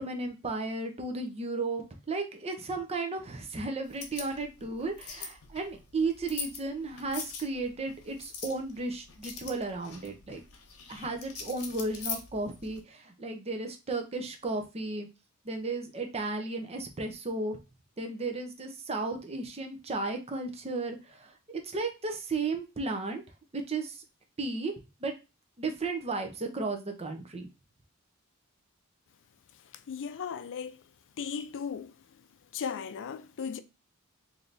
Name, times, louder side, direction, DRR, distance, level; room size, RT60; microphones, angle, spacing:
voice 1, 0.0-10.4 10.9-15.1 15.4-17.6 18.0-23.2 23.5-24.0 24.4-24.7 25.0-25.1 25.6-27.5, right 3 dB, 30° right, 0.7 m, -34 dB
sound 1, 3.8-12.8, left 5 dB, 80° left, 1.0 m, -43 dB
voice 2, 29.9-30.8 31.2-31.9 32.5-33.6, left 6 dB, 60° left, 0.4 m, -36 dB
3.3 x 2.8 x 3.9 m
head